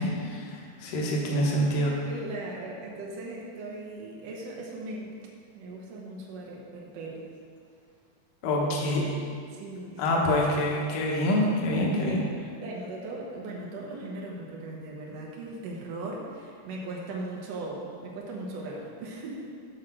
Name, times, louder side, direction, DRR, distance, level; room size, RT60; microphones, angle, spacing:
voice 1, 0.0-2.0 8.4-9.1 10.0-12.2, left 1 dB, 70° left, -2 dB, 2.5 m, -26 dB
voice 2, 2.1-5.1 5.5-7.3 8.4-8.7 9.5-10.2 11.1-11.2 11.9-19.5, right 2 dB, 90° right, -3 dB, 1.4 m, -38 dB
8.0 x 6.4 x 4.4 m, 2.2 s
omnidirectional pair, 4.3 m